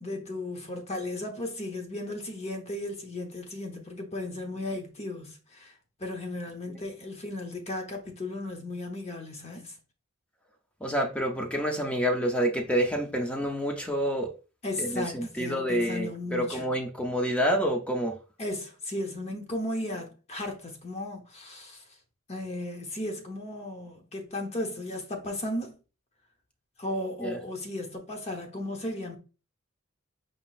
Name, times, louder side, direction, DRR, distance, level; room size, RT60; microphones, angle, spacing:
voice 1, 0.0-5.7 6.0-9.7 14.6-16.6 18.4-21.8 22.3-25.8 26.8-29.2, left 1 dB, 30° left, 0.9 m, -35 dB
voice 2, 10.8-14.3 14.8-18.2 27.2-27.4, equal, 5° left, 0.5 m, -28 dB
5.1 x 3.7 x 2.4 m
head